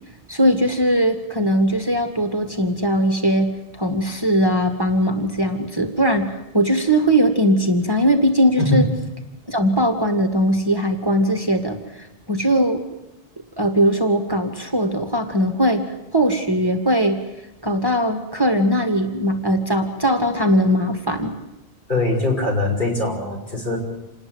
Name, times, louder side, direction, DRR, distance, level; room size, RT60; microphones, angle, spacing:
voice 1, 0.3-8.9 9.5-12.8 13.6-17.2 17.6-21.3, equal, 20° right, 5 dB, 1.9 m, -20 dB
voice 2, 21.9-23.8, left 2 dB, 50° left, 0 dB, 6.4 m, -22 dB
28.0 x 19.5 x 8.0 m, 0.95 s
omnidirectional pair, 1.1 m